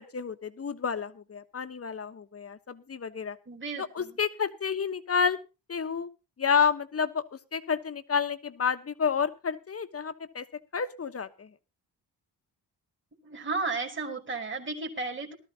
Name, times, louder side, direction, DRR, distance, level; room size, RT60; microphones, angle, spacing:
voice 1, 0.0-3.4 3.8-5.4 5.7-6.1 6.4-7.2 7.5-10.4 10.7-11.5, left 6 dB, 35° left, 10 dB, 1.2 m, -30 dB
voice 2, 3.5-4.2 13.2-15.3, right 3 dB, 30° right, 2 dB, 2.9 m, -34 dB
18.5 x 13.0 x 2.9 m, 0.29 s
cardioid pair, 100°, 40 cm